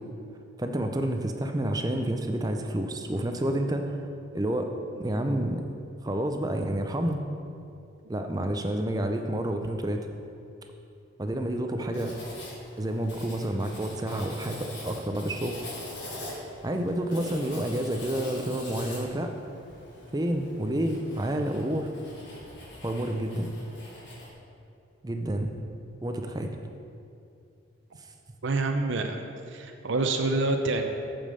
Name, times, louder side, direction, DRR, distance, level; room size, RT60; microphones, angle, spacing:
voice 1, 0.6-4.0 4.3-5.6 6.0-7.2 8.1-10.1 11.2-12.1 12.8-15.7 16.6-19.3 20.1-21.9 22.8-23.5 25.0-25.5 26.0-26.5, right 1 dB, 20° right, 5 dB, 0.5 m, -29 dB
Writing, 11.9-24.3, left 1 dB, 60° left, 2.3 m, -43 dB
voice 2, 28.4-29.2 29.5-30.9, right 3 dB, 65° right, 4 dB, 0.6 m, -27 dB
8.8 x 5.2 x 6.7 m, 2.6 s
head